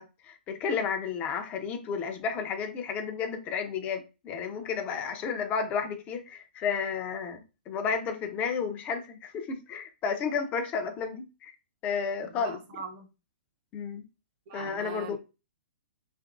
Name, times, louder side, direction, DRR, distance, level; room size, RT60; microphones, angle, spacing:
voice 1, 0.0-11.5 11.8-12.6 13.7-14.0 14.5-15.2, left 6 dB, 25° left, 0.5 m, -32 dB
voice 2, 12.2-13.1 14.5-15.2, right 5 dB, 40° right, 0.8 m, -41 dB
2.8 x 2.5 x 2.4 m
figure-of-eight pair, 115°, 6 cm